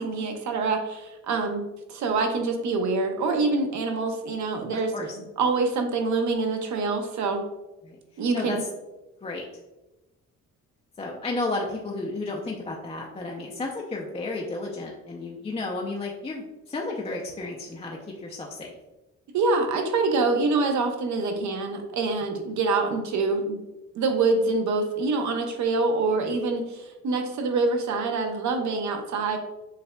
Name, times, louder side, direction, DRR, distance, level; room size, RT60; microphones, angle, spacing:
voice 1, 0.0-4.9 5.4-7.4 8.2-8.6 19.3-23.6 23.9-29.4, right 3 dB, 70° right, 4 dB, 0.7 m, -25 dB
voice 2, 8.3-8.7 9.2-9.5 11.0-18.8 22.4-22.5, left 2 dB, 20° left, -1 dB, 0.5 m, -32 dB
6.7 x 2.3 x 2.2 m, 1.0 s
cardioid pair, 90°, 30 cm